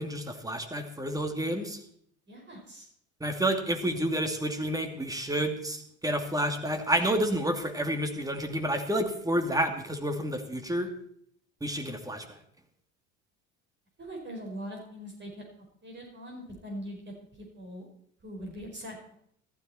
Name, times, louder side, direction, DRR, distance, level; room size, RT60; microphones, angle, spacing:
voice 1, 0.0-1.8 3.2-10.9 11.6-12.2, right 1 dB, 10° right, 6 dB, 2.5 m, -29 dB
voice 2, 2.3-2.9 14.0-15.4 15.8-17.0 17.3-17.9 18.2-19.1, equal, 30° right, 0 dB, 5.2 m, -41 dB
14.5 x 13.0 x 4.4 m, 0.66 s
hypercardioid pair, 75°, 36 cm